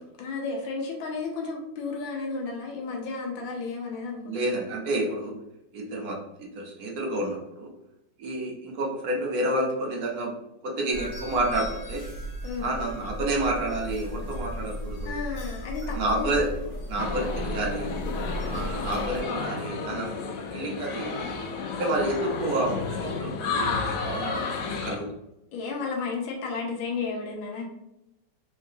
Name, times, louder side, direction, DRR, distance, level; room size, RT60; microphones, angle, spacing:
voice 1, 0.2-4.4 5.0-5.2 12.4-12.8 15.0-16.4 25.5-27.7, left 4 dB, 85° left, 0 dB, 1.6 m, -33 dB
voice 2, 4.2-5.3 5.7-7.7 8.2-10.3 10.6-12.0 12.6-15.2 15.8-16.5 16.9-17.9 18.4-21.4 21.8-25.1, right 1 dB, 60° right, -2 dB, 1.1 m, -29 dB
several different chimes at a hardware store, 10.9-19.2, equal, 50° left, 1.1 m, -35 dB
sound 1, 17.0-25.0, left 4 dB, 70° left, 1.2 m, -32 dB
3.7 x 3.7 x 2.7 m, 0.88 s
omnidirectional pair, 2.1 m